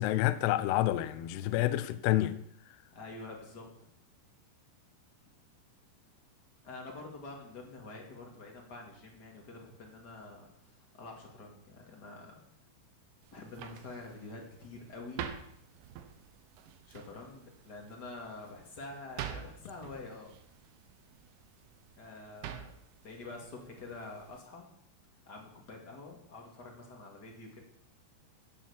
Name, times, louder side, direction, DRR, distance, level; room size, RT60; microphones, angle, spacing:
voice 1, 0.0-2.4, left 15 dB, 85° left, 2.3 m, -28 dB
voice 2, 2.9-3.7 6.6-12.3 13.3-15.2 16.8-20.3 21.9-22.7 23.0-24.7 25.2-27.6, left 3 dB, 35° left, 1.8 m, -47 dB
sound 1, 13.2-24.4, right 9 dB, 80° right, 3.4 m, -48 dB
11.5 x 9.0 x 7.3 m
omnidirectional pair, 5.5 m